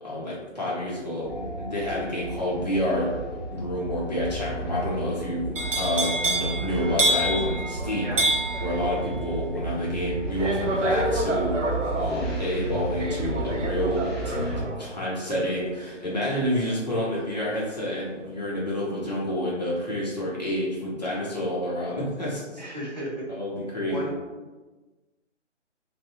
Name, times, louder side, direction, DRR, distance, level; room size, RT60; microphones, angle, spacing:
voice 1, 0.0-3.1 3.5-5.5 5.8-8.1 8.6-22.6 23.3-24.1, left 1 dB, 35° left, -7 dB, 0.6 m, -29 dB
sound 1, 1.2-14.6, right 2 dB, 5° right, 1.0 m, -33 dB
sound 2, 5.6-17.5 17.9-18.3, right 1 dB, 80° right, 0.5 m, -29 dB
voice 2, 22.6-23.4 23.9-24.6, right 1 dB, 40° right, -6 dB, 0.6 m, -35 dB
2.6 x 2.0 x 2.4 m, 1.2 s
figure-of-eight pair, 145°, 36 cm